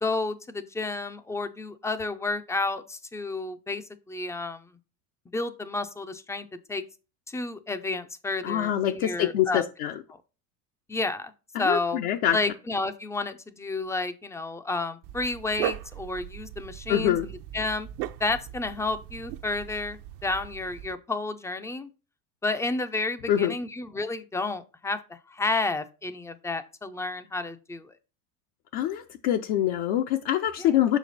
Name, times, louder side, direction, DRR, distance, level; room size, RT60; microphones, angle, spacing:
voice 1, 0.0-4.7 5.3-6.8 7.3-9.6 10.9-11.3 11.6-12.0 12.3-17.9 18.2-21.9 22.4-27.9 30.6-30.7, left 3 dB, 5° left, 10 dB, 0.4 m, -31 dB
voice 2, 8.4-10.0 11.5-12.4 16.9-17.3 23.3-23.5 28.7-31.0, left 11 dB, 65° left, 4 dB, 0.7 m, -25 dB
Dog, 15.0-20.9, right 13 dB, 65° right, 0.7 m, -38 dB
5.8 x 5.1 x 4.0 m, 0.31 s
supercardioid pair, 110°, 45 cm